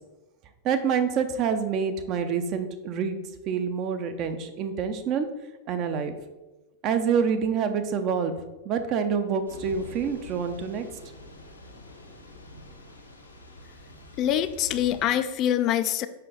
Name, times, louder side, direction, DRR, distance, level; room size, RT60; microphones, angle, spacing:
voice 1, 0.6-3.2 3.5-5.3 5.7-6.1 6.8-8.3 8.6-10.8, right 6 dB, 40° right, 8 dB, 0.7 m, -27 dB
Thunder / Rain, 9.5-15.1, left 1 dB, 85° left, 1.0 m, -45 dB
voice 2, 14.2-16.1, left 11 dB, 35° left, 11 dB, 0.4 m, -24 dB
6.6 x 5.5 x 3.9 m, 1.1 s
figure-of-eight pair, 90°, 0 cm